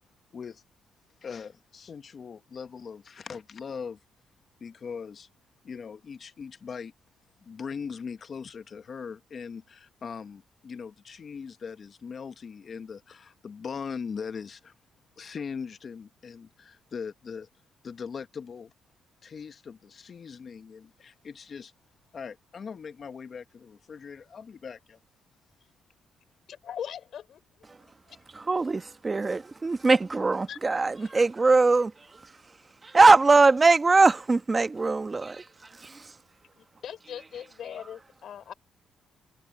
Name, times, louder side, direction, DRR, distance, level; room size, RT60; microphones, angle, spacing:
voice 1, 1.2-4.0 4.6-5.3 5.6-6.9 7.4-14.7 15.2-17.5 17.8-18.7 19.2-21.7 22.1-25.0, left 6 dB, 45° left, 1.1 m, -40 dB
voice 2, 26.5-27.4 28.1-28.2 30.5-30.6 31.0-31.1 36.6-38.5, left 9 dB, 65° left, 3.7 m, -40 dB
voice 3, 28.3-32.6 32.8-36.2, right 3 dB, 25° right, 1.2 m, -22 dB
cardioid pair, 90°, 0 cm